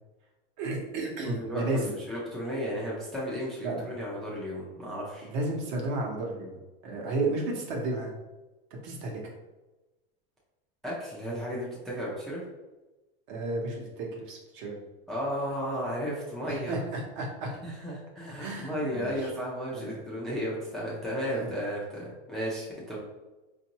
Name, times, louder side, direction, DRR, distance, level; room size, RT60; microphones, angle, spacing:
voice 1, 0.6-1.9 3.6-3.9 5.3-6.5 6.8-8.1 8.8-9.2 13.3-14.8 16.5-17.5 18.4-19.3 19.7-19.9 21.4-21.5 22.9-23.0, right 2 dB, 55° right, 0 dB, 1.0 m, -32 dB
voice 2, 1.2-5.3 10.8-12.4 15.1-16.8 17.6-23.0, equal, ahead, -6 dB, 0.4 m, -34 dB
4.4 x 2.6 x 2.9 m, 1.1 s
supercardioid pair, 155°, 29 cm